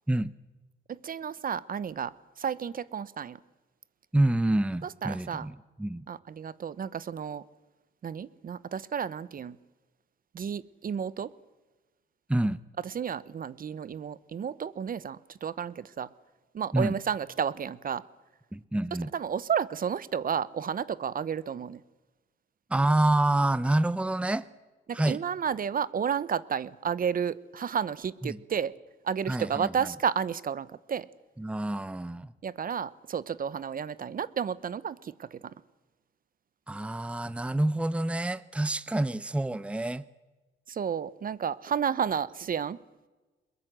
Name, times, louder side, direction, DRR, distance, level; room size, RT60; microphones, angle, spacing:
voice 1, 0.9-2.1 2.4-3.4 5.0-5.5 6.1-7.4 8.0-9.6 10.3-11.3 12.8-16.1 16.5-18.0 19.1-21.8 24.9-28.7 29.0-31.1 32.4-35.4 40.7-42.8, right 7 dB, 45° right, 0.9 m, -32 dB
voice 2, 4.1-6.1 12.3-12.6 16.7-17.0 18.5-19.1 22.7-24.5 24.9-25.2 28.2-28.4 29.3-29.9 31.4-32.3 36.7-40.1, right 1 dB, 5° right, 0.8 m, -27 dB
23.0 x 22.0 x 7.6 m
cardioid pair, 90°, 20 cm